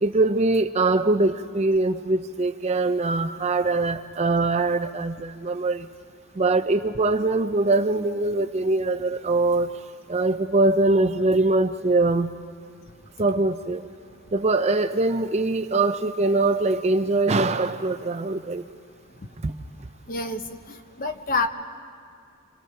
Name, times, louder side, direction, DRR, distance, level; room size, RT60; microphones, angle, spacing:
voice 1, 0.0-5.9 6.4-9.8 10.1-12.3 13.2-13.8 14.3-18.6 19.4-19.5, right 2 dB, 30° right, 9 dB, 0.5 m, -22 dB
voice 2, 20.1-20.4 20.7-21.5, left 3 dB, 40° left, 7 dB, 1.0 m, -27 dB
27.0 x 26.0 x 4.5 m, 2.2 s
head